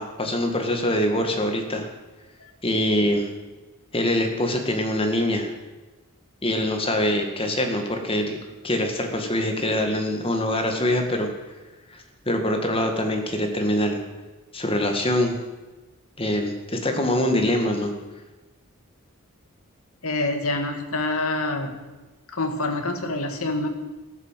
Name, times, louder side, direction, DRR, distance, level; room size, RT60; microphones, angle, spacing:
voice 1, 0.0-1.9 2.6-3.3 3.9-5.5 6.4-8.4 8.6-11.3 11.9-14.0 14.5-15.3 16.2-17.9, left 1 dB, 25° left, 4 dB, 2.0 m, -24 dB
voice 2, 20.0-21.8 22.3-23.7, left 2 dB, 75° left, 6 dB, 1.9 m, -26 dB
14.0 x 11.5 x 7.6 m, 1.2 s
head